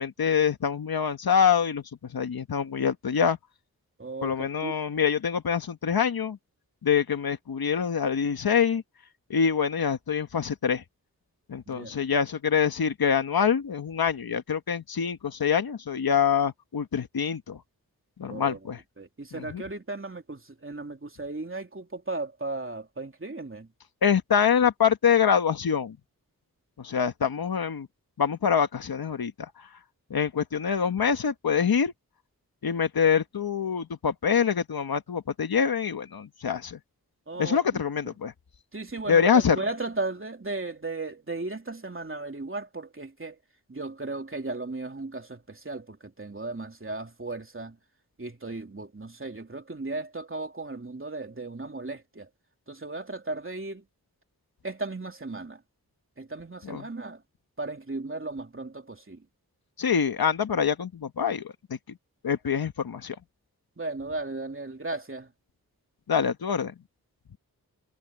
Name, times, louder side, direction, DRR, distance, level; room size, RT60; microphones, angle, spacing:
voice 1, 0.0-1.8 2.1-3.4 4.2-6.4 6.8-8.8 9.3-10.8 11.5-17.6 18.2-18.8 19.3-19.6 24.0-26.0 26.8-27.9 28.2-29.7 30.1-31.9 32.6-36.8 37.4-38.3 39.1-39.6 56.6-56.9 59.8-61.5 61.9-62.0 62.2-63.2 66.1-66.7, left 7 dB, 75° left, 1.4 m, -25 dB
voice 2, 4.0-4.3 4.6-4.7 11.7-12.0 18.3-18.6 19.0-23.7 37.3-37.8 38.7-43.4 43.7-47.8 48.2-52.3 52.7-53.8 54.6-55.6 56.2-57.2 57.6-59.2 63.8-65.3, right 2 dB, 35° right, 3.3 m, -36 dB
cardioid pair, 45°, 36 cm